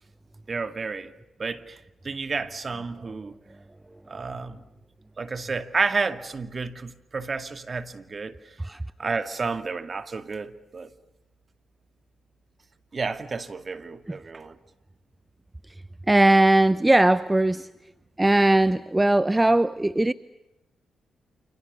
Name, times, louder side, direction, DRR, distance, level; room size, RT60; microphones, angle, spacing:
voice 1, 0.5-1.1 1.4-3.3 4.1-4.6 5.2-8.5 9.0-10.9 12.9-14.6, right 4 dB, 45° right, 2.2 m, -31 dB
voice 2, 16.1-17.7 18.2-20.1, right 1 dB, 15° right, 0.9 m, -19 dB
29.5 x 28.5 x 6.9 m
hypercardioid pair, 45°, 0 cm